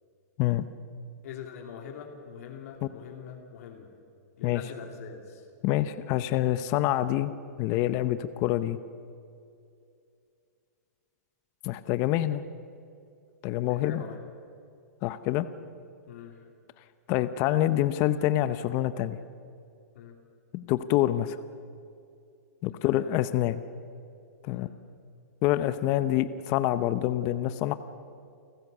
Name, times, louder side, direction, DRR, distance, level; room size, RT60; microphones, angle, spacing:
voice 1, 1.2-3.9 4.4-5.4 13.7-14.2 16.1-16.4 19.9-20.1 22.8-23.1 24.5-24.7, left 8 dB, 60° left, 2 dB, 2.8 m, -43 dB
voice 2, 5.6-7.3 7.6-8.8 11.6-12.4 13.4-14.0 15.0-15.5 17.1-19.2 20.5-21.4 22.6-23.6 24.5-24.7 25.4-27.7, left 14 dB, 35° left, 13 dB, 0.8 m, -26 dB
29.0 x 15.0 x 6.8 m, 2.4 s
hypercardioid pair, 150°, 9 cm